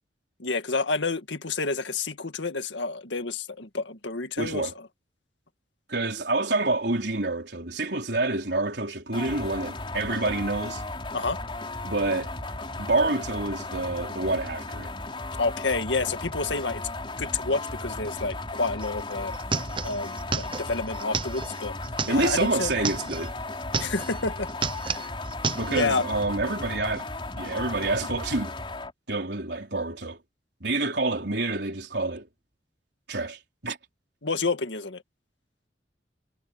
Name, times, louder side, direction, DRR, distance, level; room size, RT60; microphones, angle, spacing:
voice 1, 0.4-4.9 11.1-11.4 15.4-16.9 17.2-19.3 19.8-21.8 22.1-22.7 23.8-24.5 24.9-25.1 25.7-26.0 34.2-35.0, left 3 dB, 85° left, 1.9 m, -29 dB
voice 2, 4.4-4.7 5.9-10.8 11.8-12.3 12.8-14.9 22.1-23.3 25.5-27.1 27.3-28.5 29.1-30.2 30.6-32.3 33.1-33.8, right 2 dB, 65° right, 4.7 m, -27 dB
sound 1, 9.1-28.9, left 2 dB, 30° left, 4.2 m, -35 dB
sound 2, 18.8-18.9 19.1-23.3 23.6-24.2 24.5-25.9, right 5 dB, 30° right, 0.7 m, -32 dB
head